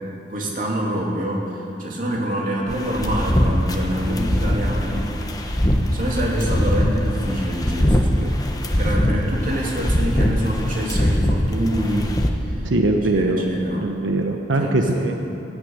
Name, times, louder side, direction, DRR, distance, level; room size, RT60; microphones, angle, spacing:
voice 1, 0.3-5.1 5.9-8.4 8.8-12.7 13.1-13.8 14.6-15.2, equal, 45° right, -2 dB, 2.8 m, -26 dB
sound 1, 2.7-12.3, equal, 20° left, 1.0 m, -22 dB
voice 2, 12.6-13.4 13.8-15.2, right 2 dB, 90° right, 3 dB, 1.0 m, -21 dB
17.0 x 10.0 x 8.7 m, 2.8 s
head